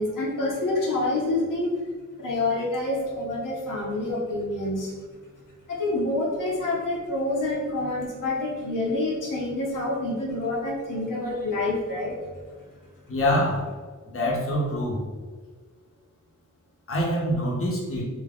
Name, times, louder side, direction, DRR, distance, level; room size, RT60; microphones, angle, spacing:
voice 1, 0.0-1.7 2.2-4.9 5.7-12.2, left 2 dB, 90° left, -4 dB, 1.0 m, -27 dB
voice 2, 13.1-13.6 14.1-15.0 16.9-18.0, equal, 45° left, -4 dB, 0.9 m, -25 dB
3.4 x 2.8 x 3.6 m, 1.5 s
wide cardioid pair, 125°, 31 cm